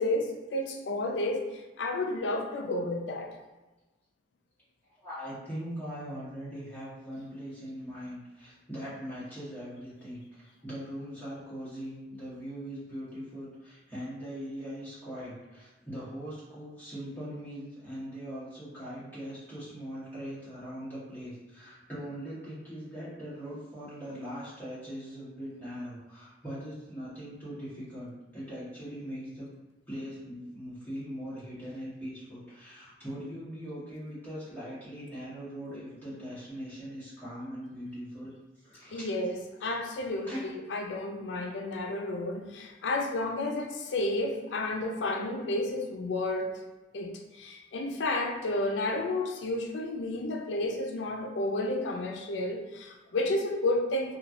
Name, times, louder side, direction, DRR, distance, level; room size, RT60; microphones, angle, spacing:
voice 1, 0.0-3.3 38.9-46.6 46.9-54.2, left 2 dB, 85° left, 2 dB, 0.4 m, -31 dB
voice 2, 5.0-29.5 29.9-38.3 38.6-39.1 40.3-40.5, equal, 10° left, -11 dB, 1.3 m, -41 dB
3.0 x 2.3 x 2.5 m, 1.1 s
head